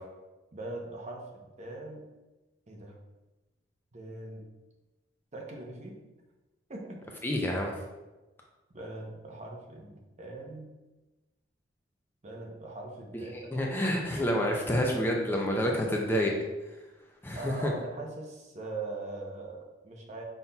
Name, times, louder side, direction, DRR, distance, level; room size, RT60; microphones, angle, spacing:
voice 1, 0.5-2.0 2.7-3.0 3.9-4.5 5.3-6.0 6.7-7.1 8.7-10.7 12.2-13.4 17.4-20.2, right 2 dB, 40° right, 0 dB, 0.7 m, -41 dB
voice 2, 7.2-7.7 13.3-16.3 17.2-17.7, equal, 10° left, 0 dB, 0.4 m, -28 dB
5.6 x 4.1 x 2.2 m, 1.1 s
head